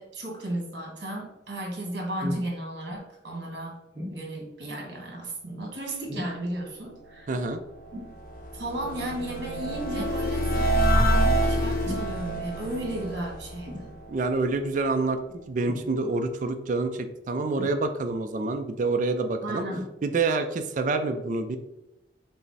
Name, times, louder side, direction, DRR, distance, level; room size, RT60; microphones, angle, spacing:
voice 1, 0.0-3.7 4.1-7.3 8.5-13.9 19.4-19.8, right 1 dB, 65° right, -1 dB, 1.5 m, -34 dB
sound 1, 2.2-2.5 3.9-4.2 6.1-6.5 7.9-8.2 9.9-10.2 11.8-12.1 13.7-13.9 15.6-15.9 17.5-18.1 19.7-19.9 20.7-20.8, left 1 dB, 25° right, 1.4 m, -36 dB
voice 2, 7.3-7.6 14.1-19.7 20.0-21.6, right 3 dB, 45° right, 7 dB, 0.3 m, -27 dB
sound 2, 7.6-14.6, equal, 55° left, 0.6 m, -27 dB
5.5 x 2.0 x 4.0 m, 0.89 s
head